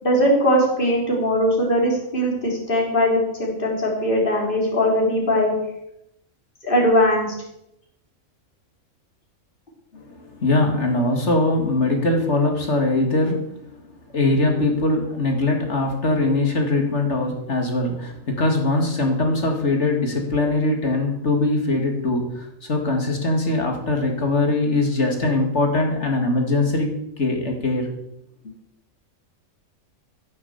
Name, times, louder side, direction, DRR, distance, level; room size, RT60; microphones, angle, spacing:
voice 1, 0.0-5.5 6.6-7.3, equal, 40° left, -2 dB, 3.7 m, -20 dB
voice 2, 9.9-13.7 14.1-27.9, left 2 dB, 55° left, 2 dB, 2.7 m, -22 dB
15.5 x 7.3 x 7.2 m, 0.80 s
omnidirectional pair, 1.4 m